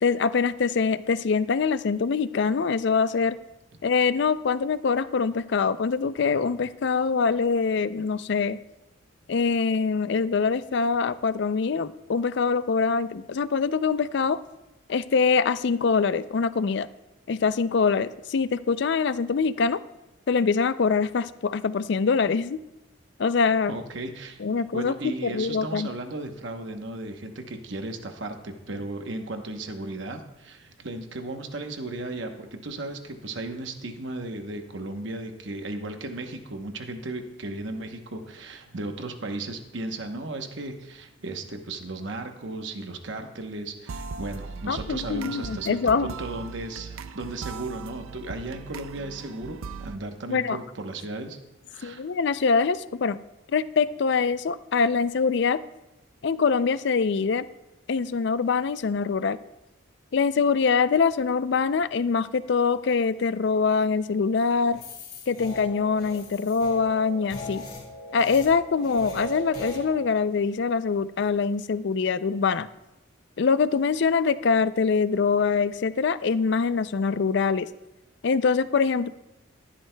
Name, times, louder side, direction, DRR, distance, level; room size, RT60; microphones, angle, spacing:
voice 1, 0.0-3.4 3.8-8.6 9.3-14.4 14.9-16.9 17.3-19.8 20.3-22.6 23.2-23.7 24.4-25.9 44.7-46.1 50.3-50.6 51.8-53.2 53.5-55.6 56.2-57.4 57.9-59.4 60.1-64.8 65.3-67.6 68.1-72.7 73.4-77.7 78.2-79.1, left 5 dB, 55° left, 15 dB, 0.4 m, -24 dB
voice 2, 23.7-24.4 24.7-51.4 51.6-52.0, right 2 dB, 65° right, 5 dB, 0.9 m, -35 dB
sound 1, 43.9-50.0, right 5 dB, 90° right, 0.4 m, -39 dB
sound 2, 64.7-69.8, equal, 40° left, 4.3 m, -38 dB
15.0 x 11.5 x 2.2 m, 0.99 s
head